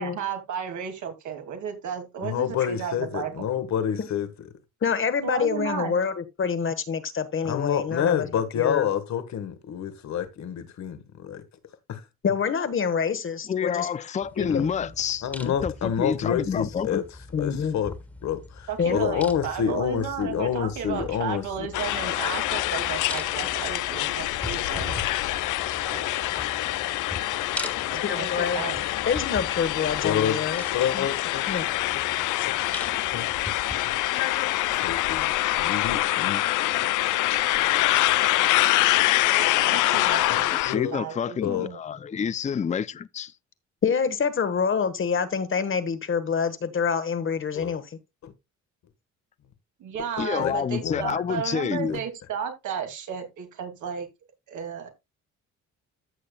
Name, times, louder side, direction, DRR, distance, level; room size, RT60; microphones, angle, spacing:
voice 1, 0.0-3.3 3.9-4.0 5.2-5.9 18.7-25.0 25.9-26.0 27.9-28.8 39.4-40.6 40.9-41.8 49.8-54.1 54.5-54.9, right 7 dB, 75° right, 2.5 m, -34 dB
voice 2, 2.2-4.3 7.4-11.4 11.9-12.0 14.4-14.9 15.2-17.0 17.4-17.9 18.2-21.7 30.0-30.4 30.7-31.4 31.9-32.0 32.5-32.6 33.1-33.3 34.7-36.4 40.3-41.0 41.4-41.7 47.5-47.7 48.2-48.3 50.4-50.5 50.8-51.2 51.9-52.0, left 9 dB, 65° left, 1.6 m, -28 dB
voice 3, 4.8-8.3 8.6-8.9 12.2-13.9 14.4-14.7 17.3-17.8 18.8-19.0 28.0-28.6 29.1-30.6 30.9-31.1 31.5-31.6 43.8-48.0, left 6 dB, 45° left, 1.3 m, -26 dB
voice 4, 13.5-17.0 40.5-43.3 50.2-52.0, left 7 dB, 25° left, 0.4 m, -28 dB
sound 1, 14.2-33.8, left 1 dB, 5° left, 1.8 m, -42 dB
sound 2, 21.7-40.8, left 16 dB, 85° left, 0.5 m, -25 dB
14.5 x 6.6 x 2.3 m
cardioid pair, 90°, 30 cm